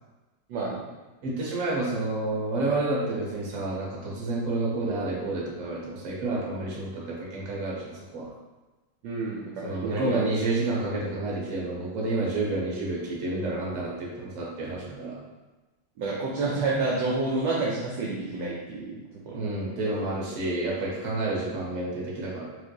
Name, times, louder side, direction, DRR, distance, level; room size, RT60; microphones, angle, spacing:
voice 1, 0.5-0.8 9.0-10.2 16.0-19.0 19.3-19.4, right 3 dB, 75° right, -5 dB, 1.0 m, -29 dB
voice 2, 1.2-8.3 9.6-15.2 19.3-22.4, right 2 dB, 55° right, -5 dB, 0.9 m, -29 dB
4.3 x 2.7 x 2.2 m, 1.2 s
omnidirectional pair, 2.3 m